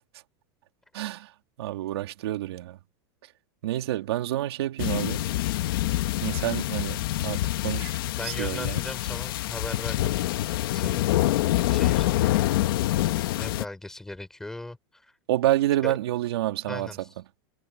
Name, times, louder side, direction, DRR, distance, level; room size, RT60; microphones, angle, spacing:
voice 1, 0.9-1.3 1.6-2.8 3.6-5.3 6.2-8.8 15.3-17.0, right 14 dB, 85° right, 2.7 m, -28 dB
sound 1, 4.8-13.6, left 15 dB, 60° left, 1.3 m, -26 dB
voice 2, 8.1-11.2 11.7-12.2 13.3-15.1 15.8-16.0 16.7-17.1, left 2 dB, 5° left, 5.2 m, -38 dB
supercardioid pair, 175°, 13 cm